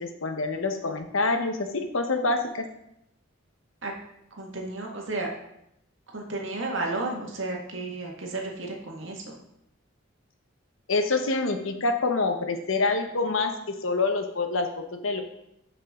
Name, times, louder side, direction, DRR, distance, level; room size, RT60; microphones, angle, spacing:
voice 1, 0.0-2.6 10.9-13.5 13.8-15.2, left 3 dB, 75° left, 6 dB, 1.1 m, -26 dB
voice 2, 4.3-5.3 6.1-9.4, right 2 dB, 65° right, 0 dB, 1.8 m, -32 dB
12.0 x 5.6 x 3.7 m, 0.80 s
head